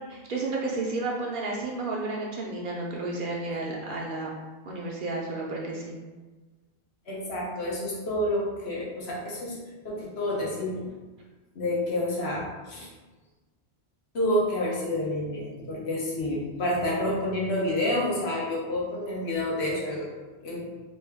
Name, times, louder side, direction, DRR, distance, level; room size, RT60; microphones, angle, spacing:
voice 1, 0.1-4.3 4.7-6.0, right 2 dB, 60° right, -3 dB, 0.7 m, -32 dB
voice 2, 7.1-9.6 9.8-10.9 11.5-12.9 14.1-20.1 20.4-20.7, left 1 dB, 80° left, -5 dB, 1.1 m, -29 dB
3.0 x 2.2 x 3.4 m, 1.3 s
omnidirectional pair, 1.1 m